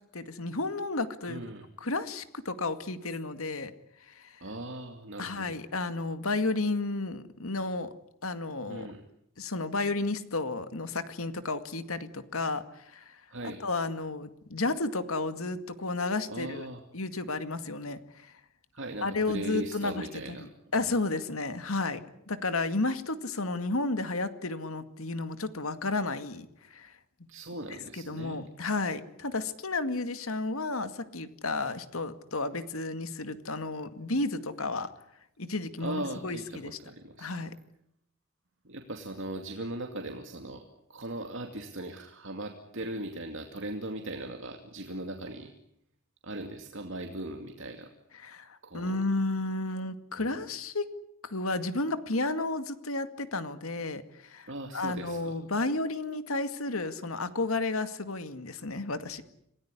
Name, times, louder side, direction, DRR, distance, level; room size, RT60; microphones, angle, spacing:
voice 1, 0.1-1.4 1.8-3.7 4.1-4.4 5.2-7.9 8.2-8.9 9.4-13.2 13.6-16.7 16.9-18.3 19.0-20.4 20.7-22.0 22.3-26.9 27.5-27.6 27.9-34.9 35.4-36.8 37.2-37.5 48.1-50.9 51.2-59.2, left 3 dB, 80° left, 10 dB, 2.2 m, -32 dB
voice 2, 1.3-1.7 4.4-5.5 8.7-9.0 13.3-13.6 16.3-16.8 18.7-20.5 27.3-28.4 35.8-37.3 38.6-40.6 40.9-45.5 46.2-47.9 48.6-49.0 50.2-50.3 54.5-55.4, right 1 dB, 60° right, 4 dB, 2.6 m, -39 dB
27.5 x 19.0 x 9.9 m, 0.76 s
head